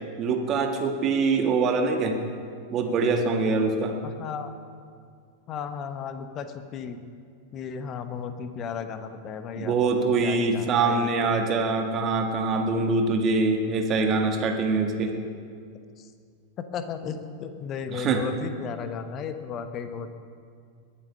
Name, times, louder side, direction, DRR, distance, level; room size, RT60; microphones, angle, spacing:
voice 1, 0.2-2.2 2.7-4.0 9.6-15.1 17.9-18.2, right 4 dB, 30° right, 4 dB, 1.7 m, -24 dB
voice 2, 4.0-4.5 5.5-7.0 7.5-11.3 16.0-16.1 16.6-20.1, left 6 dB, 30° left, 9 dB, 1.1 m, -35 dB
21.0 x 8.9 x 5.5 m, 2.2 s
figure-of-eight pair, 90°, 0 cm